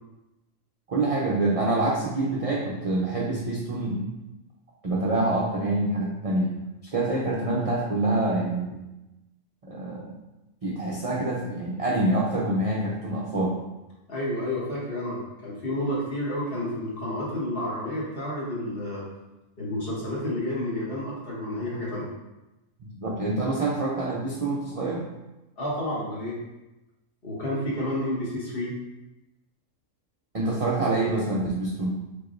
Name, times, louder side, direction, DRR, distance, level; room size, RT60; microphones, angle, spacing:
voice 1, 0.9-4.0 4.8-6.6 6.9-8.8 9.7-10.1 10.6-13.6 23.0-25.1 30.3-31.9, right 2 dB, 45° right, -4 dB, 0.4 m, -26 dB
voice 2, 14.1-19.0 19.6-22.1 25.6-26.4 27.2-28.8, left 1 dB, 45° left, -7 dB, 1.5 m, -30 dB
4.9 x 3.6 x 2.5 m, 1.0 s
omnidirectional pair, 1.4 m